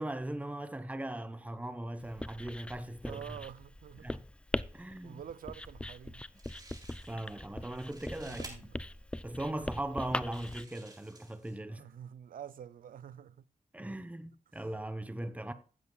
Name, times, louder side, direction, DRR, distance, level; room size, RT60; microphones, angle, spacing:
voice 1, 0.0-3.4 4.0-4.3 4.7-5.2 7.1-8.6 9.2-11.9 13.7-15.5, right 1 dB, 10° right, 0.9 m, -39 dB
Writing, 2.0-10.6, left 1 dB, 10° left, 0.4 m, -41 dB
voice 2, 3.1-4.1 5.0-6.2 8.2-8.8 11.7-13.4, right 9 dB, 75° right, 0.5 m, -47 dB
sound 1, 6.0-6.1 6.4-7.3 7.6-8.5 9.3-9.4 10.1-11.6, right 2 dB, 30° right, 3.5 m, -53 dB
15.5 x 7.7 x 2.3 m
cardioid pair, 60°, 14 cm